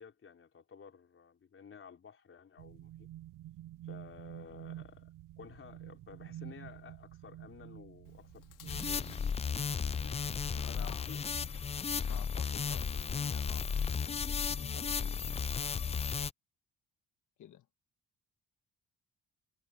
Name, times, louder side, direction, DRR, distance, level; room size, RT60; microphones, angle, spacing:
voice 1, 0.0-3.1 3.8-9.4 10.5-11.4, left 6 dB, 40° left, 4.8 m, -54 dB
sound 1, 2.6-11.5, right 14 dB, 80° right, 0.8 m, -50 dB
Chewing mastication, 8.0-15.3, left 13 dB, 90° left, 3.5 m, -58 dB
sound 2, 8.7-16.3, left 6 dB, 20° left, 0.4 m, -34 dB
voice 2, 10.6-11.1 12.1-13.7 14.0-15.8 17.4-17.7, left 10 dB, 65° left, 1.8 m, -53 dB
cardioid pair, 115°, 32 cm